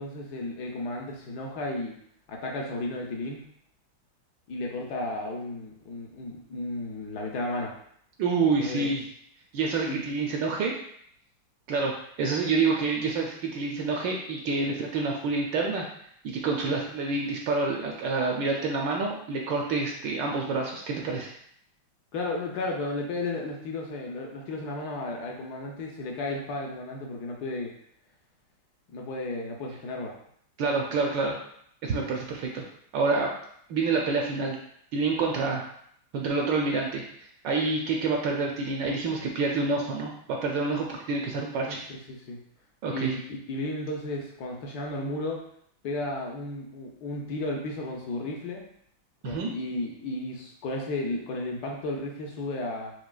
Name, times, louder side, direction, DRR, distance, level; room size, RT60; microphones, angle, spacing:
voice 1, 0.0-1.9 2.3-3.4 4.5-7.7 8.6-8.9 9.8-10.0 22.1-27.7 28.9-30.2 41.7-42.4 42.9-45.4 45.8-48.6 49.2-52.9, left 2 dB, 70° left, 0 dB, 1.0 m, -33 dB
voice 2, 8.2-9.0 9.5-10.7 11.7-11.9 12.2-15.9 16.2-21.3 30.6-31.4 31.8-32.6 32.9-33.3 33.7-34.6 34.9-35.6 36.1-37.0 37.4-41.8 42.8-43.1 49.2-49.5, right 4 dB, 75° right, 0 dB, 1.1 m, -27 dB
6.0 x 2.7 x 2.3 m, 0.66 s
omnidirectional pair, 2.4 m